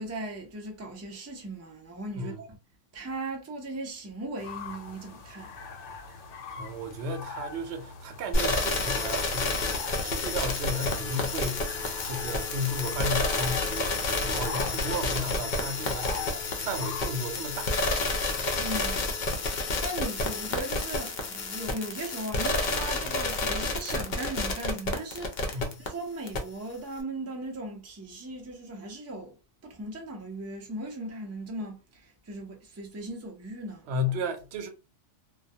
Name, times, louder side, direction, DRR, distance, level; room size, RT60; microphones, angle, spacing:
voice 1, 0.0-2.5 2.9-5.5 18.5-19.2 19.4-29.4 29.6-33.9, right 1 dB, 25° right, 0.3 m, -38 dB
sound 1, 4.4-17.1, left 5 dB, 85° left, 1.0 m, -42 dB
voice 2, 6.6-9.5 10.0-16.1 16.5-17.7 25.5-25.8 33.9-34.7, left 1 dB, 65° right, 0.8 m, -34 dB
sound 2, 8.3-25.9 26.3-26.4, left 2 dB, 55° left, 0.5 m, -29 dB
2.3 x 2.1 x 2.7 m
omnidirectional pair, 1.3 m